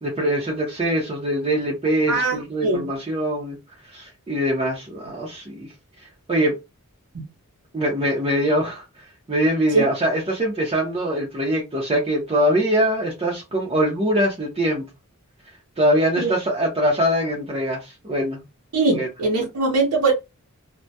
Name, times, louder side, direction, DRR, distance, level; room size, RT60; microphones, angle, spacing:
voice 1, 0.0-3.6 3.9-5.7 6.3-6.6 7.7-8.8 9.3-14.9 15.8-18.4 18.9-19.1, equal, 25° right, 0.6 m, -23 dB
voice 2, 2.1-2.9 7.1-7.2 9.7-9.8 16.2-16.3 18.7-20.1, right 3 dB, 80° right, 0.7 m, -21 dB
2.2 x 2.1 x 2.7 m
head